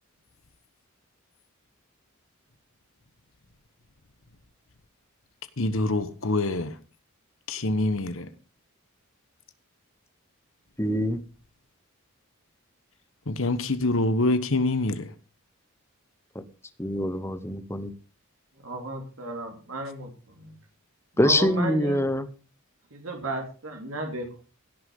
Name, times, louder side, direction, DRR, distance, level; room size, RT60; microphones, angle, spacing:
voice 1, 5.6-6.7 7.5-8.3 13.3-15.1, left 2 dB, 65° left, 12 dB, 1.1 m, -25 dB
voice 2, 10.8-11.2 16.3-16.4 16.8-17.9 21.2-22.3, left 1 dB, 10° left, 11 dB, 1.0 m, -24 dB
voice 3, 18.6-20.1 20.4-20.5 21.2-22.0 22.9-24.4, right 2 dB, 65° right, 3 dB, 3.0 m, -34 dB
16.5 x 6.6 x 5.4 m, 0.35 s
head